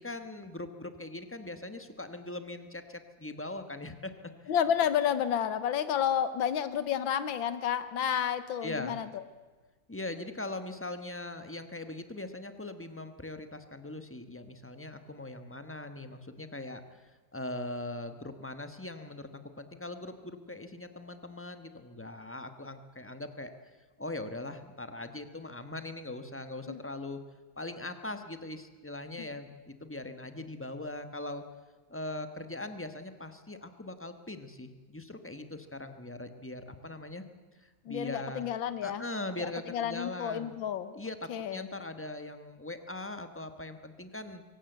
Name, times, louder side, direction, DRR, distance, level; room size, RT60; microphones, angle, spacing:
voice 1, 0.0-4.1 4.4-4.5 8.6-9.0 9.9-19.3 19.6-23.5 24.0-27.2 27.6-31.4 31.9-37.2 37.6-38.4 38.8-40.5 40.9-44.4, left 2 dB, 10° left, 8 dB, 1.0 m, -41 dB
voice 2, 4.5-9.2 26.7-26.8 29.2-29.3 37.9-39.0 39.4-40.9 41.3-41.7, left 9 dB, 80° left, 13 dB, 1.8 m, -30 dB
23.5 x 18.0 x 8.0 m, 1.3 s
omnidirectional pair, 2.1 m